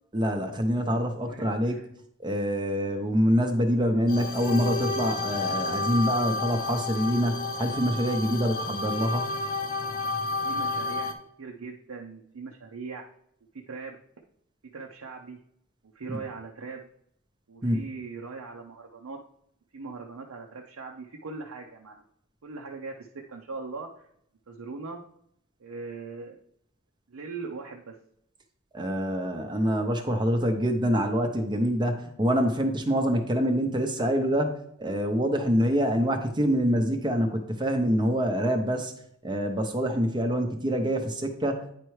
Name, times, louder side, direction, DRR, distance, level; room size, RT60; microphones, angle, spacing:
voice 1, 0.1-1.8 2.2-9.3 17.6-17.8 28.7-34.5 34.8-38.9 39.2-41.6, equal, 20° right, 4 dB, 0.6 m, -25 dB
voice 2, 1.3-1.9 10.4-11.1 11.4-13.0 13.5-14.0 14.7-15.4 15.9-16.9 17.5-19.2 19.7-22.0 22.4-24.1 24.5-25.0 25.6-26.4 27.1-28.0, right 4 dB, 90° right, 0 dB, 0.6 m, -40 dB
sound 1, 4.1-11.1, left 3 dB, 40° left, 0.6 m, -30 dB
9.2 x 4.5 x 3.1 m, 0.71 s
head